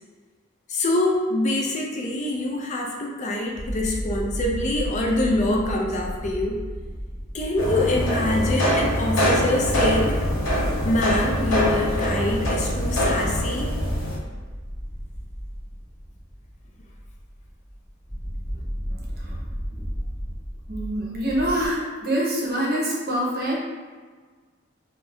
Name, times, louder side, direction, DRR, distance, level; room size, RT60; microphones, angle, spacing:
voice 1, 0.7-6.6 7.3-10.2 10.8-13.7, left 1 dB, 35° left, -1 dB, 0.4 m, -25 dB
sound 1, 3.5-21.7, equal, 10° left, 0.8 m, -33 dB
sound 2, 7.6-14.2, equal, 70° left, 0.7 m, -24 dB
voice 2, 20.7-23.6, right 1 dB, 45° right, -4 dB, 0.7 m, -25 dB
2.6 x 2.3 x 3.4 m, 1.5 s
head